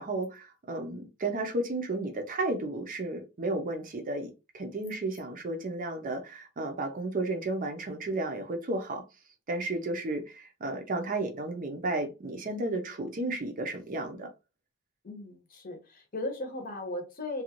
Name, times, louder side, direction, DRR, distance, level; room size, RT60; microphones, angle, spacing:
voice 1, 0.0-9.0 9.5-14.3, right 2 dB, 40° right, 0.5 m, -33 dB
voice 2, 15.0-17.4, left 2 dB, 40° left, 0.8 m, -37 dB
2.5 x 2.3 x 2.8 m
head